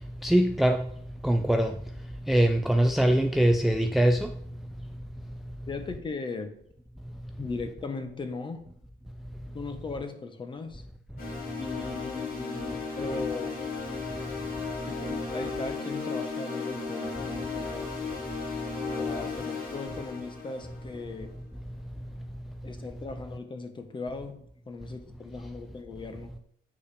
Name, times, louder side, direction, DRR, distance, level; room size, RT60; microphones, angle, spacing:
voice 1, 0.2-0.8 1.2-1.7 2.3-4.3, right 1 dB, ahead, 0.5 m, -22 dB
voice 2, 5.7-6.5 7.4-8.6 9.5-10.8 11.6-13.6 14.8-18.3 18.8-21.3 22.6-24.4 24.7-26.3, left 3 dB, 30° left, 1.3 m, -38 dB
sound 1, 11.2-21.3, left 4 dB, 65° left, 4.2 m, -35 dB
8.6 x 5.3 x 5.1 m
cardioid pair, 110°, 17 cm